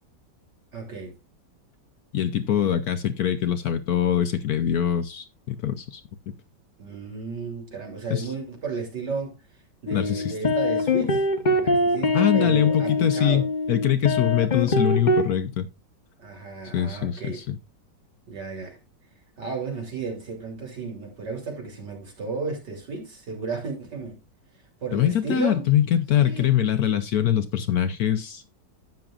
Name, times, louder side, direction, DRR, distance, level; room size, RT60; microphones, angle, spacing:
voice 1, 0.7-1.2 2.6-2.7 6.8-9.4 9.8-13.5 16.2-17.4 18.3-18.8 19.4-24.2 24.8-25.6 26.2-26.6, right 4 dB, 65° right, 3.8 m, -33 dB
voice 2, 2.1-6.0 8.1-8.3 9.9-10.3 12.1-15.7 16.7-17.6 24.9-28.5, left 10 dB, 65° left, 1.1 m, -23 dB
sound 1, 9.9-15.3, left 2 dB, 30° left, 1.0 m, -23 dB
12.0 x 8.8 x 2.5 m
omnidirectional pair, 1.9 m